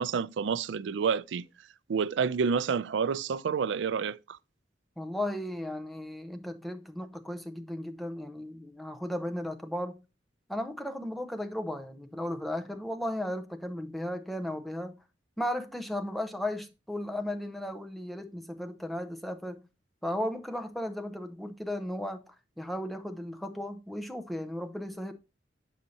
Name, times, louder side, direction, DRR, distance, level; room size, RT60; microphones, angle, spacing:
voice 1, 0.0-1.5 1.9-4.4, right 6 dB, 75° right, 0.4 m, -29 dB
voice 2, 5.0-10.0 10.5-15.0 15.4-19.6 20.0-25.1, left 1 dB, ahead, 0.7 m, -35 dB
7.1 x 6.4 x 2.7 m
head